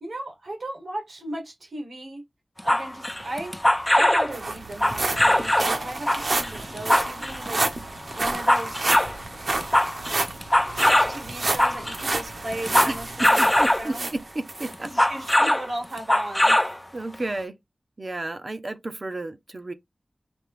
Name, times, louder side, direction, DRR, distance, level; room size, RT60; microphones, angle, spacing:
voice 1, 0.0-2.2 2.6-3.6 3.9-8.8 10.7-14.1 14.8-16.6, right 1 dB, 85° right, 2.2 m, -35 dB
sound 1, 2.6-4.3 4.7-5.7 6.1-7.5 8.0-9.2 9.5-12.0 12.5-13.9 14.7-15.7 16.0-16.8 17.1-17.2, left 1 dB, 15° left, 0.4 m, -21 dB
sound 2, 3.5-3.6 3.9-14.7 15.2-15.4 15.9-16.0, right 2 dB, 70° right, 1.1 m, -30 dB
voice 2, 13.2-14.9 16.9-17.5 18.0-19.7, right 2 dB, 50° right, 0.8 m, -32 dB
5.1 x 3.0 x 3.3 m
wide cardioid pair, 70°, 0 cm